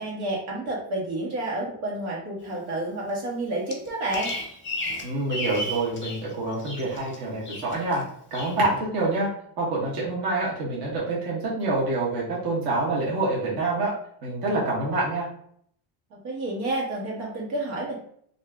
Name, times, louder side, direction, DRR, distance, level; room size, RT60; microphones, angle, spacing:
voice 1, 0.0-4.3 16.2-18.0, right 2 dB, 75° right, -3 dB, 1.4 m, -30 dB
Bird vocalization bird call bird song, 3.7-6.2 6.5-7.2 7.4-8.0 8.3-8.6, left 1 dB, 25° left, 0.6 m, -33 dB
voice 2, 5.0-8.0 8.3-9.3 9.6-13.9 14.2-15.3, right 2 dB, 50° right, -5 dB, 1.1 m, -26 dB
2.7 x 2.6 x 3.3 m, 0.64 s
cardioid pair, 150°, 49 cm